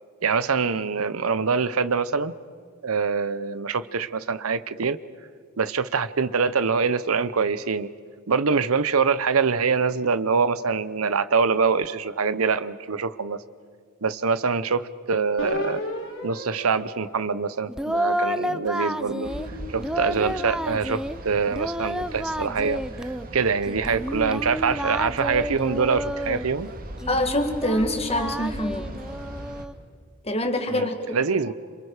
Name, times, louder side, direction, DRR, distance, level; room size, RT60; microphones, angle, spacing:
voice 1, 0.2-2.3 2.8-5.0 5.6-7.9 8.3-13.4 14.0-15.8 16.2-19.3 19.7-22.8 23.3-26.7 30.7-31.5, right 5 dB, 85° right, 15 dB, 0.8 m, -24 dB
sound 1, 15.4-18.1 18.7-21.1, left 2 dB, 70° left, 3.3 m, -37 dB
Singing, 17.7-19.5 19.8-21.2 21.5-23.3 23.7-26.5 27.0-29.7, equal, 5° right, 0.5 m, -30 dB
sound 2, 19.2-29.6, right 1 dB, 45° right, 1.9 m, -39 dB
voice 2, 27.1-28.9 30.2-31.2, left 1 dB, 30° left, 6 dB, 2.0 m, -25 dB
27.5 x 27.0 x 5.0 m, 2.1 s
head